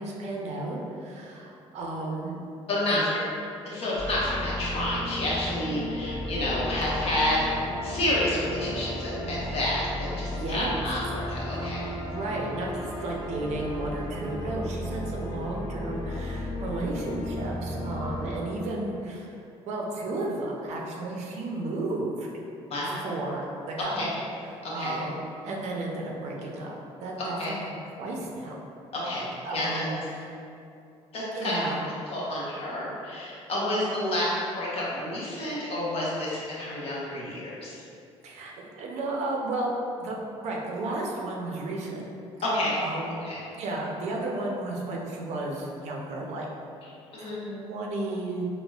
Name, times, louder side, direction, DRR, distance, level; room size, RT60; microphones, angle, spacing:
voice 1, 0.0-2.4 2.9-3.1 10.3-10.8 12.0-19.3 19.7-22.3 23.0-24.2 24.5-27.7 28.0-28.6 29.4-30.3 31.3-31.9 38.2-39.7 40.0-40.1 40.4-42.1 42.7-43.1 43.5-46.5 47.2-48.4, right 2 dB, 70° right, -2 dB, 0.5 m, -33 dB
voice 2, 2.7-3.1 3.6-7.5 7.8-11.8 22.7-23.0 23.9-24.1 24.6-25.0 27.3-27.5 28.9-29.9 31.1-31.7 32.1-37.8 42.4-42.8 43.1-43.5 47.1-47.4, left 1 dB, 55° left, -6 dB, 0.9 m, -29 dB
sound 1, 3.9-18.4, left 1 dB, 90° left, 0.6 m, -34 dB
4.1 x 2.1 x 2.3 m, 2.5 s
cardioid pair, 85°, 12 cm